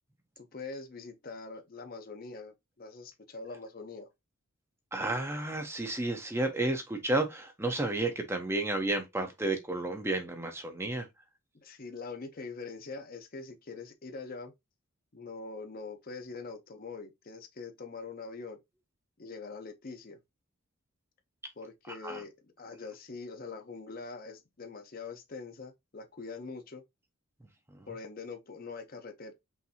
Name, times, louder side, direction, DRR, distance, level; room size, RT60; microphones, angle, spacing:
voice 1, 0.4-4.1 11.6-14.5 15.1-18.6 19.2-20.2 21.6-26.8 27.9-29.3, left 4 dB, 40° left, 0.6 m, -43 dB
voice 2, 4.9-11.1 22.0-22.2 27.7-27.9, right 2 dB, 10° right, 0.6 m, -32 dB
5.5 x 2.6 x 2.7 m
head